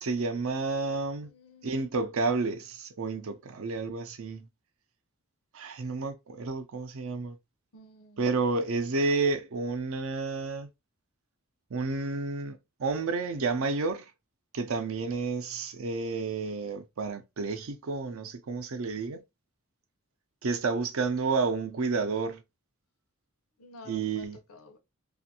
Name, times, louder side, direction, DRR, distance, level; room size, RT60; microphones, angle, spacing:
voice 1, 0.0-1.3 1.6-4.5 5.5-7.4 8.2-10.7 11.7-14.1 14.5-19.2 20.4-22.4 23.9-24.4, right 4 dB, 70° right, 0.5 m, -30 dB
voice 2, 1.2-1.9 7.7-8.2 23.6-24.8, left 2 dB, 85° left, 0.7 m, -51 dB
2.5 x 2.5 x 2.7 m
head